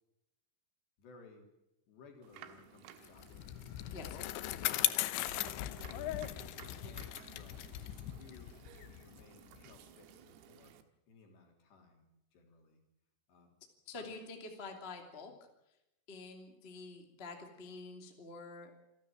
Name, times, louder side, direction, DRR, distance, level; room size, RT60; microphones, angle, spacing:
voice 1, 1.0-1.5 1.9-3.6 4.1-5.1 5.4-6.3 6.8-8.6 9.0-10.8 11.1-12.8 13.3-13.5 13.9-14.1, left 4 dB, 55° left, 3 dB, 5.4 m, -59 dB
sound 1, 2.2-10.8, right 10 dB, 90° right, 4.0 m, -57 dB
Bicycle, 3.0-9.8, left 15 dB, 75° left, 2.9 m, -38 dB
voice 2, 13.8-15.3 16.1-18.7, left 3 dB, 20° left, 3 dB, 1.5 m, -47 dB
27.5 x 13.0 x 8.8 m, 0.87 s
omnidirectional pair, 6.0 m